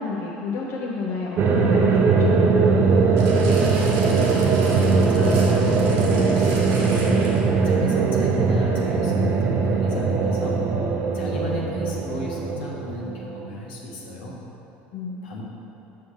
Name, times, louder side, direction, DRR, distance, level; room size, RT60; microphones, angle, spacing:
voice 1, 0.0-2.8 14.9-15.4, left 3 dB, 50° left, -3 dB, 0.8 m, -30 dB
sound 1, 1.4-13.4, right 4 dB, 45° right, 0.7 m, -20 dB
sound 2, 3.2-7.6 8.3-8.4, right 2 dB, 70° right, 1.6 m, -36 dB
voice 2, 3.8-4.4 4.9-7.3 7.6-10.6 11.1-14.4 15.2-15.4, left 1 dB, 80° left, -4 dB, 1.2 m, -34 dB
6.9 x 6.3 x 3.2 m, 2.9 s
hypercardioid pair, 80°, 5 cm